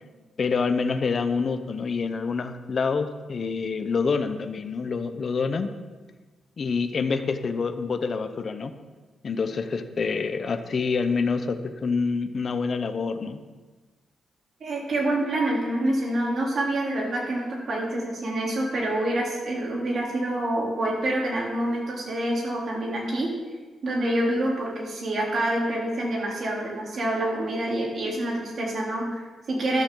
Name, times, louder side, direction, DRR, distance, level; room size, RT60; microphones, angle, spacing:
voice 1, 0.4-5.7 6.6-8.7 9.2-13.4, left 4 dB, 40° left, 8 dB, 0.8 m, -27 dB
voice 2, 14.6-23.3 23.8-29.8, right 1 dB, 50° right, -2 dB, 3.2 m, -27 dB
13.0 x 11.5 x 3.8 m, 1.3 s
wide cardioid pair, 155°, 0 cm